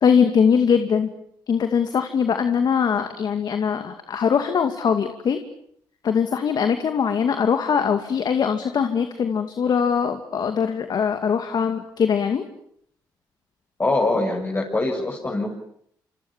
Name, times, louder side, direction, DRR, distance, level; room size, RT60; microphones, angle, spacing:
voice 1, 0.0-1.1 1.5-5.4 6.0-12.4, left 7 dB, 55° left, 7 dB, 2.4 m, -21 dB
voice 2, 13.8-15.6, left 2 dB, 30° left, -1 dB, 7.1 m, -23 dB
27.5 x 26.0 x 7.4 m, 0.70 s
supercardioid pair, 70°, 8 cm